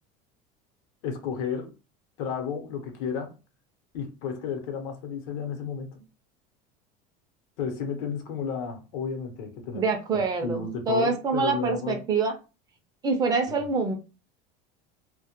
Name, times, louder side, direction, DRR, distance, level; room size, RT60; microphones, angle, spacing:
voice 1, 1.0-1.7 2.2-3.3 3.9-6.0 7.6-9.8 10.1-12.0, left 6 dB, 70° left, 0.8 m, -32 dB
voice 2, 9.7-12.3 13.0-13.9, right 4 dB, 20° right, 0.4 m, -25 dB
2.1 x 2.1 x 2.8 m
cardioid pair, 160°, 18 cm